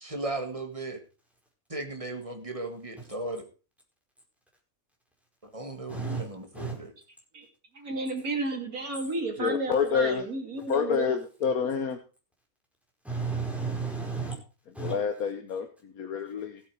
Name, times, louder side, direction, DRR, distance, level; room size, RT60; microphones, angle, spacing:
voice 1, 0.0-1.0 1.7-3.4 5.4-6.9, right 2 dB, 25° right, 5 dB, 2.0 m, -36 dB
voice 2, 5.9-6.3 6.5-6.8 13.0-14.4 14.7-15.0, right 4 dB, ahead, -1 dB, 4.7 m, -32 dB
voice 3, 7.7-11.2, right 2 dB, 80° right, 3 dB, 3.1 m, -32 dB
voice 4, 9.4-10.3 10.7-12.0 14.8-16.6, left 6 dB, 80° left, 6 dB, 1.6 m, -28 dB
16.0 x 8.5 x 4.7 m, 0.34 s
omnidirectional pair, 1.5 m